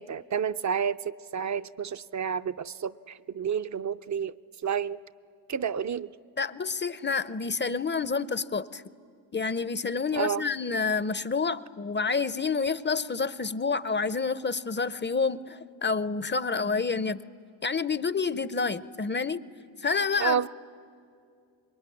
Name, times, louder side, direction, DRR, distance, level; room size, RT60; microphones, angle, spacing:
voice 1, 0.0-4.3 4.6-5.0 5.5-6.1 10.1-10.4 20.2-20.5, right 7 dB, 40° right, 13 dB, 0.6 m, -30 dB
voice 2, 6.4-8.8 9.3-17.2 17.6-19.4 19.8-20.5, left 4 dB, 25° left, 17 dB, 0.6 m, -28 dB
26.0 x 22.0 x 9.9 m, 2.4 s
cardioid pair, 70°, 47 cm